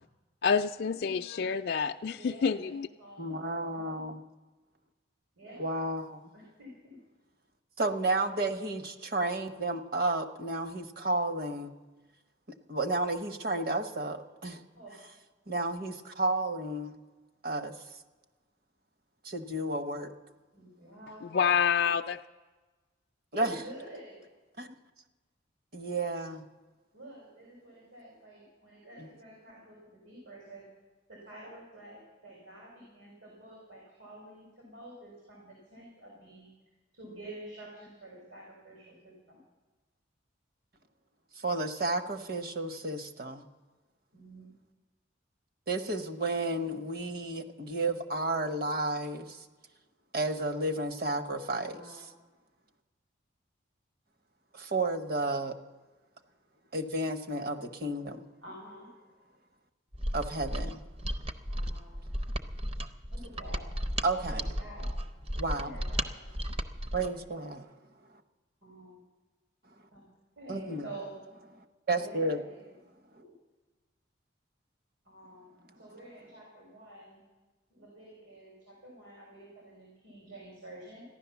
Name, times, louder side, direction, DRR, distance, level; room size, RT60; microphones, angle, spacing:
voice 1, 0.4-2.9 21.3-22.2, left 6 dB, 55° left, 4 dB, 0.4 m, -28 dB
voice 2, 2.1-3.3 3.6-4.2 5.4-5.6 6.3-7.0 14.7-14.9 20.5-21.3 23.4-24.2 26.9-30.6 31.1-36.5 36.9-39.4 44.1-44.5 51.6-52.0 58.4-58.9 61.5-62.0 63.1-63.7 64.3-64.9 65.6-66.3 66.9-67.5 68.6-69.0 69.9-70.0 70.4-71.1 71.9-72.7 73.1-73.3 75.0-77.2 77.7-81.0, right 1 dB, 80° right, -2 dB, 4.2 m, -49 dB
voice 3, 3.2-4.2 5.6-6.2 7.8-11.7 12.7-14.6 15.5-17.0 17.4-17.7 19.2-20.1 23.3-23.5 24.6-24.7 25.7-26.4 29.0-29.1 41.4-43.4 45.7-49.4 50.1-51.8 54.5-55.5 56.7-58.3 60.1-60.8 64.0-64.4 65.4-65.7 66.9-67.6 70.5-70.8 71.9-72.4, right 2 dB, 50° right, 10 dB, 1.0 m, -32 dB
Mechanisms, 59.9-67.1, equal, 30° right, 0.6 m, -34 dB
14.5 x 11.0 x 7.0 m, 1.3 s
head